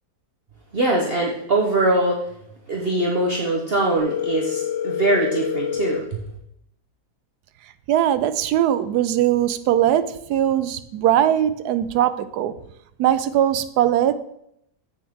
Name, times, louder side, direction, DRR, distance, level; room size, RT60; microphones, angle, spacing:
voice 1, 0.7-2.2 2.7-6.0, right 2 dB, 40° right, -1 dB, 1.1 m, -22 dB
Telephone, 4.0-6.0, left 9 dB, 85° left, 1.8 m, -26 dB
voice 2, 7.9-12.5 13.0-14.1, right 11 dB, 85° right, 12 dB, 1.2 m, -20 dB
8.5 x 7.1 x 3.6 m, 0.75 s
omnidirectional pair, 1.7 m